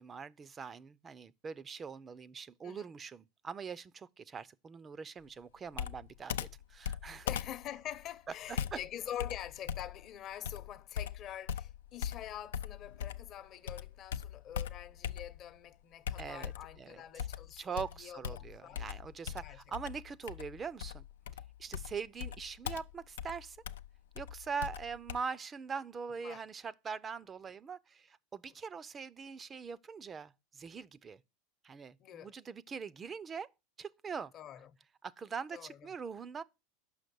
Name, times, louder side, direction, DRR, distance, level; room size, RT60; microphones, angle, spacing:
voice 1, 0.0-7.3 8.5-8.8 16.2-16.5 16.8-17.3 17.6-21.0 21.6-23.6 24.2-31.2 31.6-33.5 33.8-34.3 35.0-36.4, right 6 dB, 25° right, 0.4 m, -42 dB
Computer keyboard, 5.7-13.4 13.7-15.6 16.1-16.8 17.2-25.2, left 9 dB, 85° left, 0.4 m, -40 dB
voice 2, 7.2-18.9 19.4-19.6 26.2-26.4 32.0-32.3 34.3-34.7 35.5-35.8, left 11 dB, 45° left, 0.8 m, -45 dB
6.4 x 5.7 x 6.8 m
hypercardioid pair, 110°, 0 cm